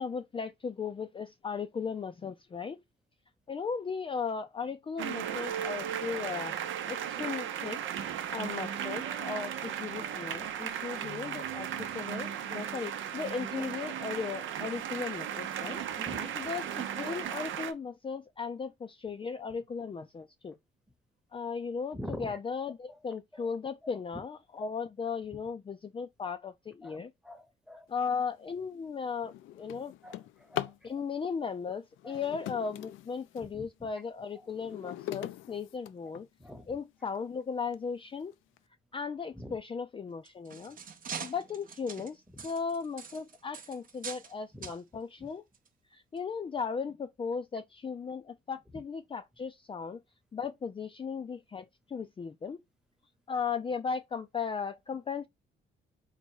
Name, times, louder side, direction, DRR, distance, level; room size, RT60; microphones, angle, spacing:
voice 1, 0.0-2.8 3.5-6.6 6.9-7.8 8.1-15.8 16.4-20.6 21.3-27.1 27.9-29.9 30.8-36.3 36.7-38.3 38.9-40.8 41.2-45.4 45.9-50.0 50.3-52.6 53.3-55.3, left 5 dB, 25° left, 0.4 m, -36 dB
sound 1, 5.0-17.7, right 9 dB, 75° right, 0.7 m, -36 dB
voice 2, 16.0-16.4 21.9-22.4 22.9-23.0 23.3-23.5 26.8-27.9 30.0-30.7 32.0-32.2 33.5-33.7 34.8-34.9 36.4-36.7 39.4-39.6 44.5-44.7 45.2-45.3, equal, 5° right, 0.9 m, -44 dB
Drawer open or close, 28.2-28.4 28.9-30.9 31.9-33.5 34.1-36.5 37.1-37.2 37.7-37.8 38.2-38.6, left 13 dB, 85° left, 0.4 m, -41 dB
sound 2, 40.1-44.3 44.6-44.8 45.5-45.7 46.2-46.3, right 6 dB, 45° right, 0.8 m, -43 dB
4.0 x 2.2 x 4.6 m
cardioid pair, 90°, 20 cm